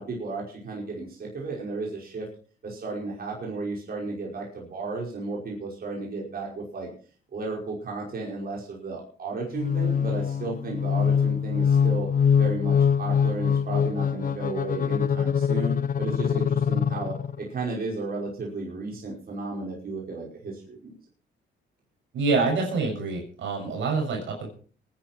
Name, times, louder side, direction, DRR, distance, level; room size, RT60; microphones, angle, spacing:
voice 1, 0.0-2.3 2.6-6.9 7.3-12.1 12.4-21.0, right 3 dB, 50° right, -2 dB, 5.5 m, -34 dB
sound 1, 9.5-17.5, left 7 dB, 45° left, 0.7 m, -24 dB
voice 2, 22.1-24.5, right 4 dB, 70° right, 2 dB, 6.5 m, -26 dB
22.0 x 10.5 x 4.5 m, 0.42 s
cardioid pair, 90°, 20 cm